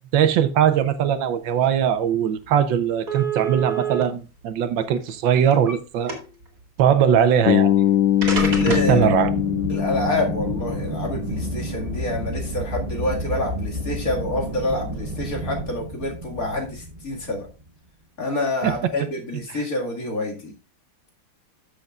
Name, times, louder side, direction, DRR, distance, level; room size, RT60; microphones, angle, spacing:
voice 1, 0.1-6.1 6.8-7.8 8.7-9.3 18.6-18.7 19.5-19.6, right 8 dB, 75° right, 1.4 m, -20 dB
sound 1, 2.0-2.1 2.4-2.5 3.1-4.0 4.9-5.7 6.1-6.5 7.6-7.7 8.2-9.0, right 6 dB, 45° right, 2.8 m, -27 dB
Bass guitar, 7.5-11.6, left 12 dB, 75° left, 1.4 m, -22 dB
Aircraft, 8.2-17.7, right 1 dB, 30° right, 0.7 m, -31 dB
voice 2, 8.4-9.1 9.7-17.5 18.2-20.5, left 1 dB, 45° left, 2.4 m, -27 dB
13.5 x 6.6 x 2.4 m
omnidirectional pair, 2.1 m